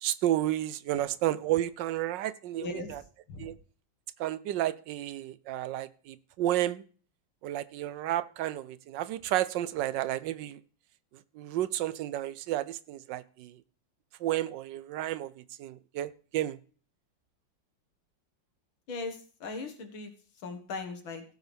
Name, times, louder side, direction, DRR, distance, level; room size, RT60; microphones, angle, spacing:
voice 1, 0.0-3.0 3.4-3.5 4.2-6.8 7.4-10.6 11.3-13.5 14.2-16.6, right 13 dB, 70° right, 1.2 m, -31 dB
voice 2, 2.6-3.0 3.3-3.6 18.9-20.1 20.4-21.2, left 3 dB, 85° left, 2.4 m, -38 dB
17.0 x 8.0 x 3.4 m
omnidirectional pair, 2.1 m